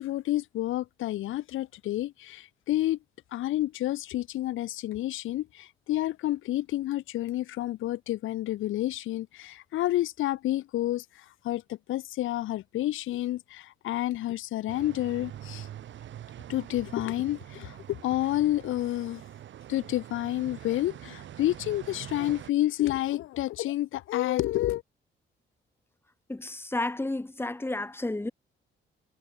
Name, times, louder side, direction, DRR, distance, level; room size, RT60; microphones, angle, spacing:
voice 1, 0.0-3.0 3.3-15.7 16.5-19.2 19.7-24.8, left 14 dB, 85° left, 4.1 m, -29 dB
sound 1, 14.7-22.5, right 11 dB, 70° right, 2.7 m, -44 dB
voice 2, 26.3-28.3, left 2 dB, 10° left, 2.9 m, -31 dB
cardioid pair, 90°, 20 cm